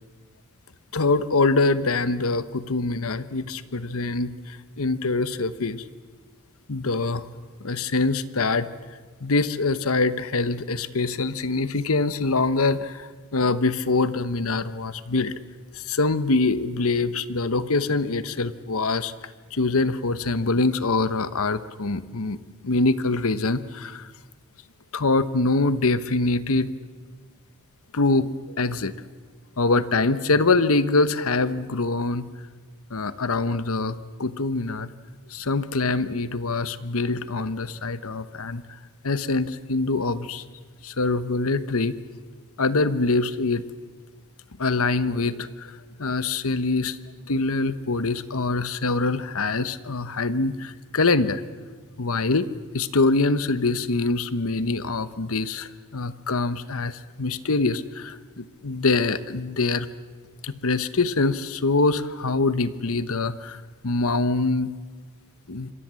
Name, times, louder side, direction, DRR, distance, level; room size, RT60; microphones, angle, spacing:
voice 1, 0.9-5.8 6.7-7.3 7.6-8.7 9.2-15.3 15.7-19.1 19.5-22.4 22.6-24.1 24.9-26.7 27.9-28.9 29.6-32.3 32.9-34.9 35.3-38.6 39.0-40.4 40.8-42.0 42.6-43.6 44.6-47.0 47.3-51.4 52.0-52.5 52.7-59.9 60.4-64.7 65.5-65.7, left 3 dB, 65° left, 13 dB, 1.1 m, -24 dB
27.0 x 22.5 x 7.6 m, 1.5 s
head